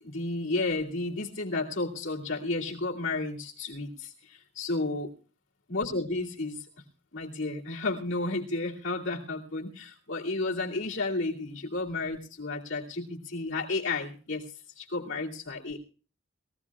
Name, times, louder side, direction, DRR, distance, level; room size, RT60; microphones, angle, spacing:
voice 1, 0.0-5.1 5.7-6.7 7.1-15.8, left 3 dB, 60° left, -4 dB, 2.6 m, -32 dB
22.0 x 16.0 x 2.4 m, 0.36 s
head